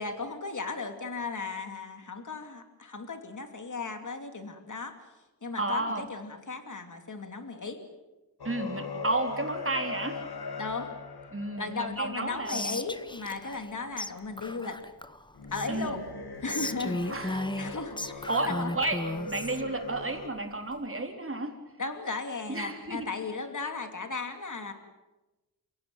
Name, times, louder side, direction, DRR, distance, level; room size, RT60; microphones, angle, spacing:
voice 1, 0.0-4.9 5.4-7.8 10.6-10.9 11.6-14.8 15.5-16.0 16.4-18.7 21.8-24.7, left 4 dB, 55° left, 7 dB, 2.8 m, -36 dB
voice 2, 5.6-6.1 8.4-10.2 11.3-12.8 15.7-15.9 17.1-17.7 18.3-21.6 22.5-23.1 23.6-23.7, right 2 dB, 35° right, 4 dB, 3.8 m, -32 dB
sound 1, 8.4-13.1 15.3-20.3, left 3 dB, 90° left, 2.0 m, -40 dB
Whispering, 12.5-13.7 14.0-14.1 14.4-15.9 16.5-19.6, left 1 dB, 10° left, 1.1 m, -35 dB
29.0 x 17.0 x 9.2 m, 1.1 s
wide cardioid pair, 90°, 37 cm